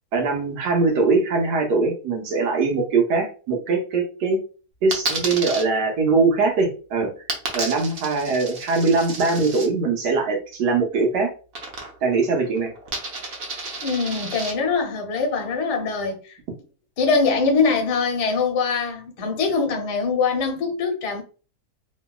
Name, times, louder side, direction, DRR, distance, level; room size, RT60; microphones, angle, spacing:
voice 1, 0.1-4.4 4.8-7.1 7.5-11.3 12.0-12.7, right 4 dB, 85° right, 1.4 m, -21 dB
Coin (dropping), 4.9-5.6 7.3-9.7 11.5-12.2 12.4-14.5, right 3 dB, 50° right, 0.7 m, -31 dB
voice 2, 13.8-16.4 17.0-21.2, left 4 dB, 90° left, 1.4 m, -23 dB
3.0 x 2.7 x 2.3 m
omnidirectional pair, 1.7 m